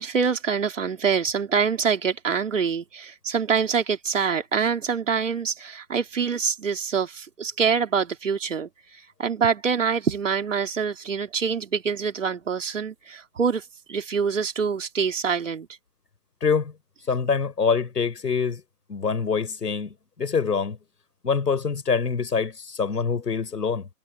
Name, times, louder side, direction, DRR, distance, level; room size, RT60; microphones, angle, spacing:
voice 1, 0.0-15.7, right 6 dB, 50° right, 3.4 m, -25 dB
voice 2, 16.4-16.7 17.1-18.6 18.9-19.9 20.2-20.8 21.2-23.9, left 5 dB, 80° left, 6.0 m, -25 dB
hypercardioid pair, 175°, 48 cm